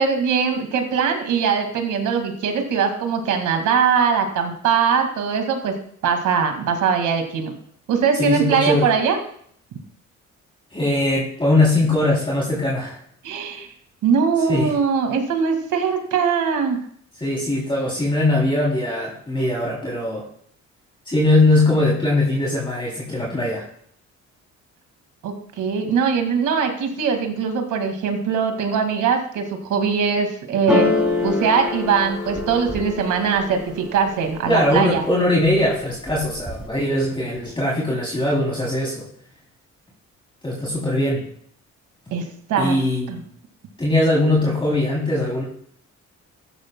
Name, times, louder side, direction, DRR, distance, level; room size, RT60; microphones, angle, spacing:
voice 1, 0.0-5.7 6.0-7.5 7.9-9.2 13.2-13.7 14.0-16.8 25.2-30.9 31.2-35.0 42.1-42.8 43.1-43.2, right 6 dB, 80° right, 5 dB, 2.0 m, -21 dB
voice 2, 8.2-8.9 10.7-13.0 14.5-14.7 17.2-20.2 21.1-23.7 34.5-39.1 40.4-41.3 42.6-43.3 43.8-45.4, left 1 dB, 15° left, -4 dB, 3.1 m, -20 dB
sound 1, 30.7-34.5 35.0-35.6 35.9-36.7, left 3 dB, 5° right, 5.3 m, -25 dB
14.5 x 11.5 x 2.2 m, 0.63 s
cardioid pair, 90°, 30 cm